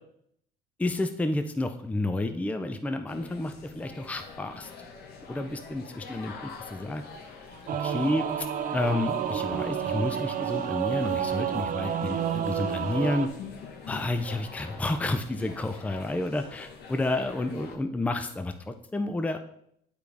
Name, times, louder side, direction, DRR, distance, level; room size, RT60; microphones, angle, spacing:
voice 1, 0.8-4.7 5.3-7.0 7.8-8.5 8.7-13.3 13.9-19.4, left 2 dB, 10° left, 8 dB, 0.5 m, -30 dB
sound 1, 3.1-17.8, left 5 dB, 70° left, 1.3 m, -45 dB
Singing / Musical instrument, 7.7-13.3, right 9 dB, 55° right, 0.6 m, -30 dB
8.4 x 4.8 x 3.4 m, 0.71 s
cardioid pair, 110°, 17 cm